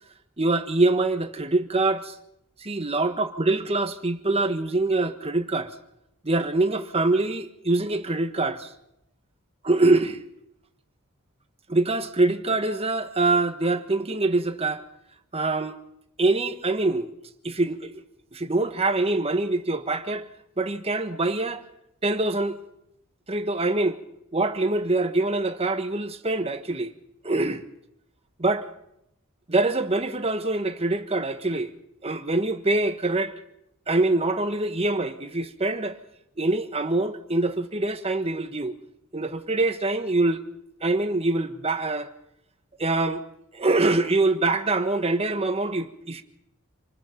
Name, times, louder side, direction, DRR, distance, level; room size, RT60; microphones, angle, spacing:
voice 1, 0.4-2.1 2.6-5.7 6.2-8.7 9.6-10.2 11.7-14.8 15.3-15.8 16.2-17.1 17.4-18.0 18.3-20.3 20.6-21.6 22.0-22.6 23.3-24.0 24.3-26.9 27.2-27.6 28.4-28.7 29.5-31.7 32.0-33.3 33.9-36.0 36.4-38.7 39.1-40.4 40.8-42.1 42.8-43.2 43.5-46.2, right 2 dB, 30° right, 1.4 m, -24 dB
27.5 x 20.0 x 5.3 m
head